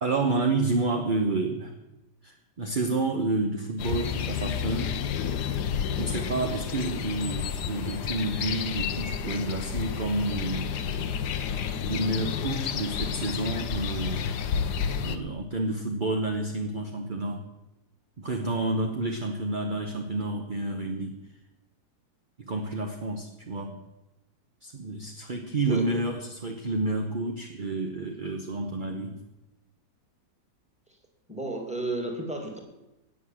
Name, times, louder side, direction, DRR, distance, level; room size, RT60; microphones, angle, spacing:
voice 1, 0.0-1.7 2.2-5.0 5.9-10.8 11.9-14.4 15.0-17.5 18.2-21.2 22.4-23.8 24.6-29.2, right 2 dB, 35° right, 4 dB, 0.9 m, -29 dB
sound 1, 3.8-15.2, left 7 dB, 65° left, 1.3 m, -30 dB
voice 2, 25.7-26.0 31.3-32.6, right 2 dB, 5° right, 3 dB, 2.3 m, -33 dB
18.0 x 6.6 x 7.3 m, 0.97 s
omnidirectional pair, 2.0 m